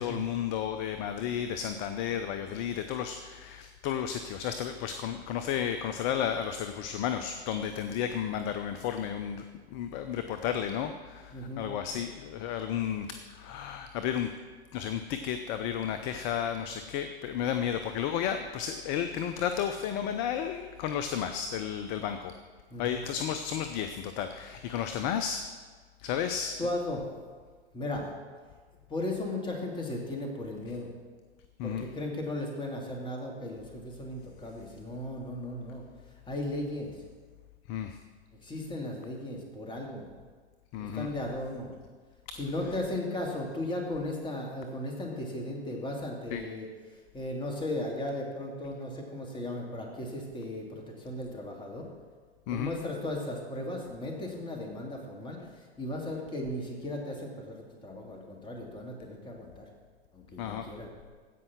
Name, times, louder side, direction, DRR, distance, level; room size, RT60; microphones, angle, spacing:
voice 1, 0.0-14.3 14.7-22.3 22.8-25.5 26.0-26.6 31.6-31.8 37.7-38.0 40.7-41.1 42.3-42.4 46.3-46.4 52.5-52.7 60.4-60.7, left 9 dB, 40° left, 8 dB, 0.7 m, -33 dB
voice 2, 11.3-11.6 22.7-23.0 26.6-27.0 27.7-28.1 28.9-30.9 31.6-35.8 36.3-36.9 38.4-40.1 40.8-41.7 42.4-46.7 47.1-51.9 52.5-59.7 60.1-60.9, left 1 dB, 15° left, 0 dB, 2.4 m, -36 dB
16.0 x 5.6 x 6.0 m, 1.5 s
hypercardioid pair, 110°, 32 cm